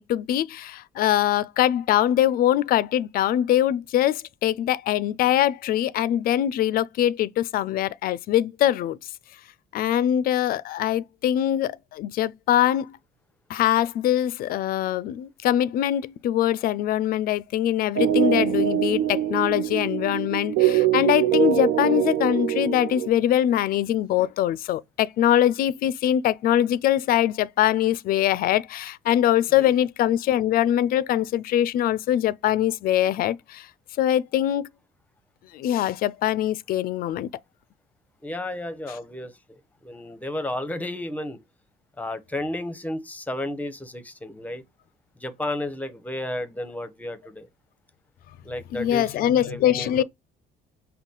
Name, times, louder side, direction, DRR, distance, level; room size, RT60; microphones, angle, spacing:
voice 1, 0.0-9.0 9.7-12.9 13.5-33.7 34.0-34.6 35.5-37.3 48.7-50.0, left 12 dB, 60° left, 0.4 m, -23 dB
sound 1, 18.0-23.1, right 11 dB, 75° right, 0.6 m, -23 dB
voice 2, 38.2-39.6 39.8-41.4 42.0-44.6 45.2-47.5 48.4-50.0, left 1 dB, 10° left, 0.7 m, -32 dB
5.4 x 2.2 x 3.8 m
cardioid pair, 110°, 17 cm